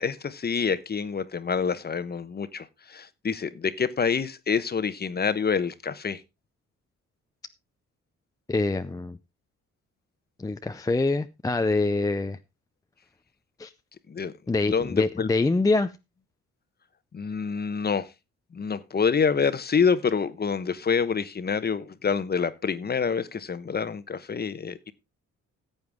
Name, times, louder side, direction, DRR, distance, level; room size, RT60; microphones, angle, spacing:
voice 1, 0.0-6.2 14.1-14.3 14.7-15.3 17.1-18.1 18.5-24.9, left 6 dB, 30° left, 1.0 m, -27 dB
voice 2, 8.5-9.2 10.4-12.4 13.6-13.7 14.5-15.9, left 3 dB, 10° left, 0.5 m, -25 dB
14.5 x 8.0 x 3.5 m
cardioid pair, 90°, 30 cm